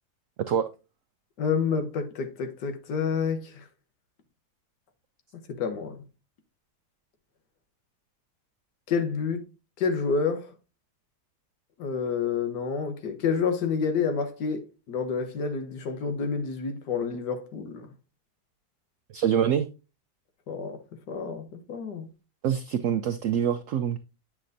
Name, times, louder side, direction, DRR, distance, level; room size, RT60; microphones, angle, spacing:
voice 1, 1.4-3.6 5.5-6.0 8.9-9.4 9.8-10.5 11.8-17.9 20.5-20.8 21.1-22.1, left 5 dB, 80° left, 1.7 m, -29 dB
voice 2, 19.1-19.7 22.4-24.0, right 8 dB, 70° right, 0.8 m, -25 dB
8.8 x 5.8 x 2.6 m
omnidirectional pair, 1.8 m